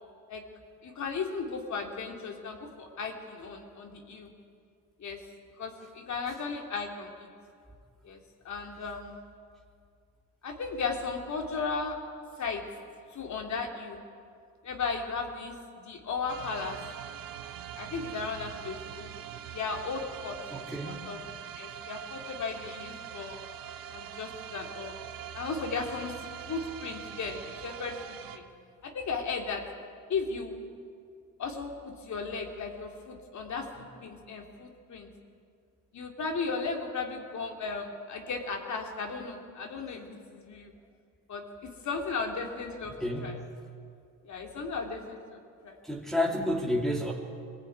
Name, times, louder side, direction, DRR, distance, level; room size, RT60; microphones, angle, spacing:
voice 1, 0.8-4.3 5.0-5.2 5.6-7.3 8.0-8.2 8.4-9.2 10.4-12.0 12.4-12.6 13.1-14.0 14.6-16.8 17.8-19.1 19.5-21.2 21.6-23.4 23.9-25.0 25.3-26.1 26.5-28.5 28.8-29.6 30.1-30.6 31.4-33.7 34.0-35.1 35.9-40.7 41.3-42.9 43.2-43.3 44.3-45.2 45.6-45.8, left 4 dB, 55° left, 2 dB, 3.3 m, -35 dB
sound 1, 16.3-28.4, right 9 dB, 85° right, 1.3 m, -43 dB
voice 2, 20.5-21.2 43.0-43.4 45.8-47.1, left 1 dB, ahead, -4 dB, 2.7 m, -31 dB
21.5 x 15.5 x 9.6 m, 2.3 s
cardioid pair, 90°, 34 cm